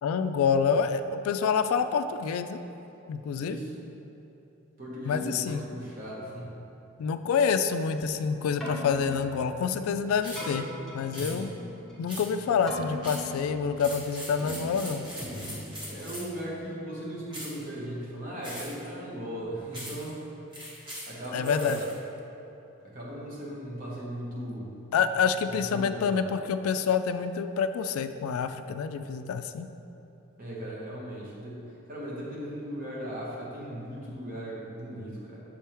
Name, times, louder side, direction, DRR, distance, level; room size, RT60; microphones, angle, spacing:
voice 1, 0.0-2.6 3.1-3.6 5.1-5.6 7.0-10.7 10.9-11.5 12.0-15.1 21.3-21.8 24.9-29.7, left 6 dB, 90° left, 14 dB, 0.3 m, -27 dB
voice 2, 3.4-3.7 4.8-6.5 15.8-20.2 21.1-21.8 22.8-24.7 25.7-26.3 30.4-31.6 31.9-35.4, equal, 40° right, -5 dB, 1.2 m, -37 dB
Keyboard (musical), 8.4-16.6, left 1 dB, ahead, 1.0 m, -40 dB
sound 1, 10.2-10.5 11.1-11.3 12.1-12.5 13.0-13.3 13.8-16.4 17.3-17.6 18.4-18.9 19.7-20.1 20.5-21.9, equal, 20° right, 1.3 m, -41 dB
7.1 x 3.4 x 4.4 m, 3.0 s
head